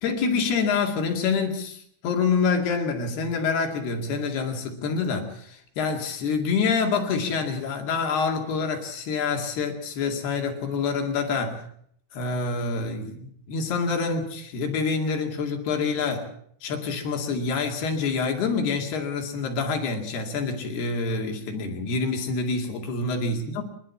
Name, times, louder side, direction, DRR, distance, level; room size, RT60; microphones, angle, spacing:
voice 1, 0.0-11.6 12.1-16.3 16.6-23.6, left 4 dB, 60° left, 3 dB, 4.1 m, -27 dB
27.5 x 11.5 x 8.4 m, 0.67 s
omnidirectional pair, 5.4 m